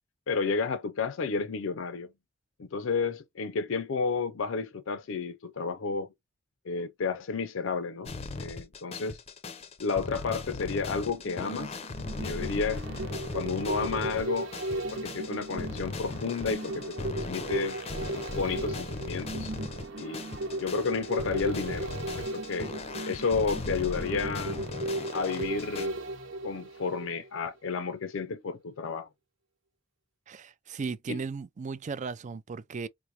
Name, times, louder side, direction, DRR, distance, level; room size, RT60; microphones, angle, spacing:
voice 1, 0.3-2.1 2.6-6.1 6.7-9.2 9.8-11.8 12.2-12.9 13.3-17.8 18.1-19.5 20.0-21.9 22.3-22.7 23.1-24.7 25.1-26.0 26.4-29.1 31.1-31.2, left 5 dB, 85° left, 0.5 m, -32 dB
sound 1, 8.1-25.9, left 3 dB, 30° left, 0.5 m, -38 dB
sound 2, 11.1-27.4 27.7-27.8, right 2 dB, 75° right, 1.1 m, -36 dB
voice 2, 30.3-32.9, right 4 dB, 40° right, 0.4 m, -36 dB
4.7 x 2.1 x 2.8 m
head